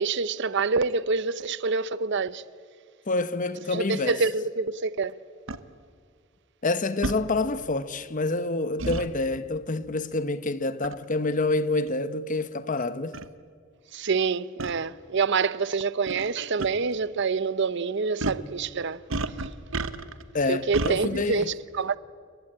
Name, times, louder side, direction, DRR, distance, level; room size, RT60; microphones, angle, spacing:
voice 1, 0.0-2.4 3.7-5.1 13.9-19.0 20.5-22.0, right 4 dB, 60° right, 0.7 m, -26 dB
voice 2, 3.1-4.2 6.6-13.2 20.3-21.5, left 2 dB, 40° left, 1.0 m, -27 dB
sound 1, 5.5-5.6 7.0-7.2 8.8-9.1 10.8-11.0 11.9-12.0 12.8-12.9 13.1-13.3 14.6-14.7 16.1-16.3 16.6-16.7 18.2-18.5 19.1-20.2 20.7-21.0, right 2 dB, 75° right, 1.1 m, -30 dB
29.5 x 22.0 x 8.9 m
head